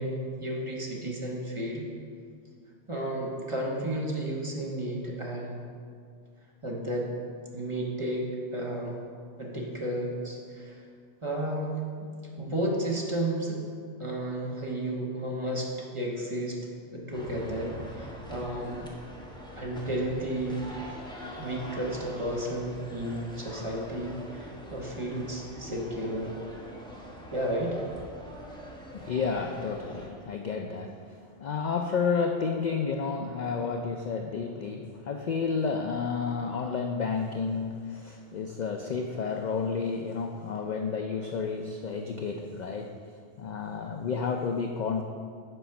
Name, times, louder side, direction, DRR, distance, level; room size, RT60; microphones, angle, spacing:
voice 1, 0.0-1.9 2.9-5.6 6.6-7.1 7.5-9.0 9.4-10.8 11.2-12.1 12.4-13.6 14.0-16.6 16.9-18.9 19.5-20.6 21.4-26.3 27.3-27.8, right 1 dB, 25° right, -3 dB, 1.2 m, -32 dB
sound 1, 17.1-30.1, equal, 5° left, 0.9 m, -44 dB
voice 2, 28.9-30.9 31.4-42.9 43.4-45.0, left 5 dB, 60° left, 4 dB, 0.4 m, -31 dB
7.8 x 5.0 x 5.9 m, 2.2 s
omnidirectional pair, 1.2 m